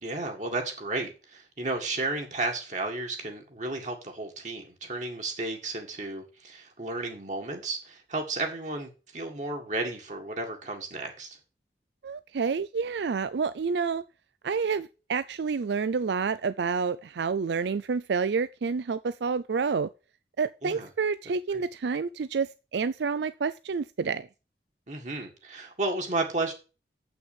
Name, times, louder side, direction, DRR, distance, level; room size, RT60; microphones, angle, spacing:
voice 1, 0.0-11.4 20.6-20.9 21.5-21.6 24.9-26.5, right 2 dB, 45° right, 1.9 m, -33 dB
voice 2, 12.0-14.0 14.4-19.9 20.4-24.3, right 5 dB, 80° right, 0.4 m, -29 dB
8.1 x 6.0 x 7.2 m
head